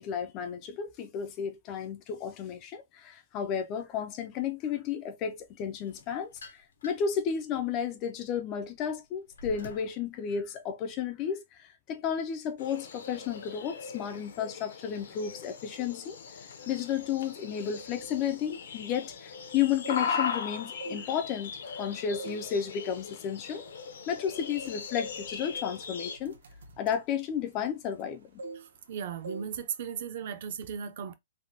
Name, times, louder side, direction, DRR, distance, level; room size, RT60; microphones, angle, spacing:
voice 1, 0.0-16.2 16.7-23.7 24.1-26.4 26.8-28.4, left 8 dB, 20° left, 0.3 m, -33 dB
sound 1, 5.8-7.2 7.7-10.0, left 2 dB, 85° left, 0.9 m, -48 dB
sound 2, 12.6-26.2, left 6 dB, 60° left, 0.6 m, -39 dB
sound 3, 19.6-20.4 20.7-21.8 22.2-22.5 22.9-23.1 23.8-23.9 24.2-28.1 28.4-28.9 29.2-29.5 29.8-30.1, right 3 dB, 80° right, 0.8 m, -45 dB
voice 2, 28.5-31.1, right 8 dB, 40° right, 0.5 m, -37 dB
3.2 x 2.1 x 2.7 m
hypercardioid pair, 175°, 0 cm